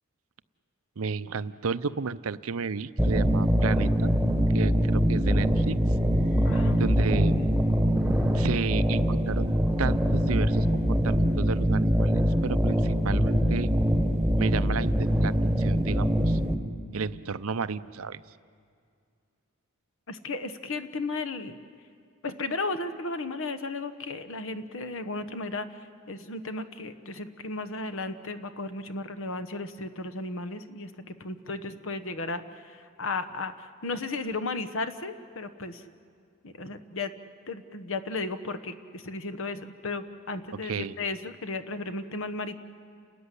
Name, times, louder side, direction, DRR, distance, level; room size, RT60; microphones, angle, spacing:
voice 1, 1.0-4.1 4.5-5.8 6.8-7.4 8.3-9.5 9.8-13.7 14.4-16.4 16.9-18.2 40.6-41.0, right 5 dB, 75° right, 14 dB, 0.6 m, -32 dB
sound 1, 3.0-16.5, equal, 5° right, 1.4 m, -23 dB
voice 2, 6.5-6.9 7.4-7.6 20.1-21.5 22.2-25.7 26.1-32.4 32.7-35.8 36.4-37.1 37.5-42.6, left 3 dB, 65° left, 11 dB, 1.1 m, -34 dB
29.5 x 13.5 x 10.0 m, 2.3 s
head